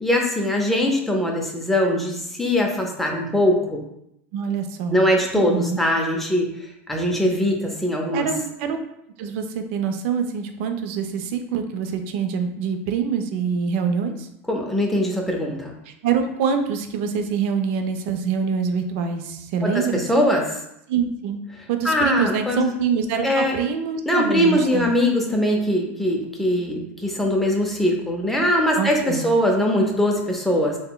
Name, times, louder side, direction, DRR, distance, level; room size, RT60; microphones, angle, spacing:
voice 1, 0.0-3.8 4.9-6.5 6.9-8.3 14.5-15.7 19.6-20.5 21.8-22.6 23.2-23.5 24.1-30.8, left 1 dB, 5° left, 0 dB, 0.6 m, -21 dB
voice 2, 4.3-5.1 5.3-5.8 8.1-8.8 9.2-14.3 15.9-20.2 20.9-21.4 21.7-24.9 28.8-29.2, right 6 dB, 65° right, 6 dB, 0.4 m, -25 dB
3.6 x 2.1 x 2.2 m, 0.80 s
hypercardioid pair, 100°, 7 cm